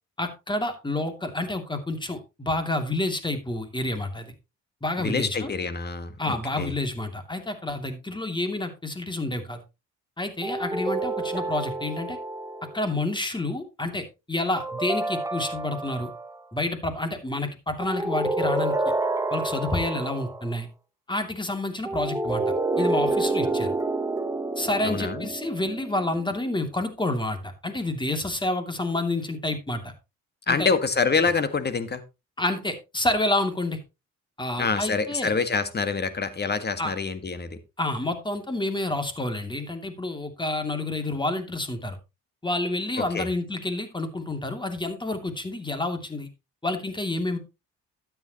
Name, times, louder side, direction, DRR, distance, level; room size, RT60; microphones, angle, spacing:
voice 1, 0.2-4.3 4.8-5.5 6.2-9.6 10.2-12.2 12.7-16.1 16.5-18.7 19.3-20.7 21.1-22.4 22.8-23.7 24.6-29.9 30.5-30.7 32.4-33.8 34.4-35.3 36.8-36.9 37.8-42.0 42.4-46.3 46.6-47.4, left 2 dB, 15° left, 6 dB, 2.7 m, -29 dB
voice 2, 5.0-6.7 24.8-25.3 30.5-32.0 34.6-37.6 43.0-43.3, left 4 dB, 35° left, 11 dB, 1.6 m, -26 dB
sound 1, 10.4-12.9 14.6-16.4 17.8-20.5 21.9-26.4, right 2 dB, 10° right, 1.1 m, -29 dB
12.5 x 9.4 x 3.0 m, 0.26 s
cardioid pair, 90°, 30 cm